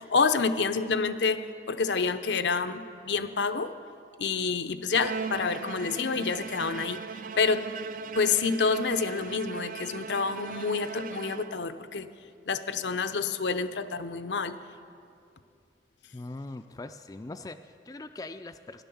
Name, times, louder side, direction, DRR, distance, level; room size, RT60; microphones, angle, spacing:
voice 1, 0.0-3.7 4.2-7.0 7.4-7.7 8.2-12.1 12.5-14.6, left 4 dB, 85° left, 10 dB, 0.7 m, -28 dB
Bowed string instrument, 4.9-11.9, right 5 dB, 50° right, 0.4 m, -39 dB
voice 2, 16.1-18.8, left 2 dB, 20° left, 8 dB, 0.3 m, -41 dB
14.0 x 11.0 x 7.0 m, 2.4 s
head